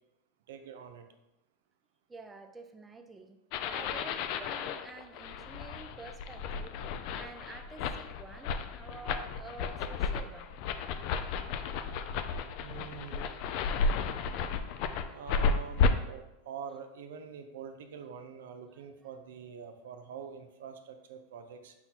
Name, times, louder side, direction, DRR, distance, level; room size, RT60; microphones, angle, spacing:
voice 1, 0.5-1.0 12.6-13.3 15.1-21.7, right 6 dB, 90° right, 7 dB, 0.5 m, -45 dB
voice 2, 2.1-3.4 3.7-6.8 7.1-10.5 12.4-12.8 14.9-15.2, right 3 dB, 15° right, 5 dB, 0.4 m, -49 dB
sound 1, 3.5-15.9, left 5 dB, 55° left, 0.3 m, -33 dB
5.7 x 2.2 x 4.0 m, 0.95 s
supercardioid pair, 135°, 0 cm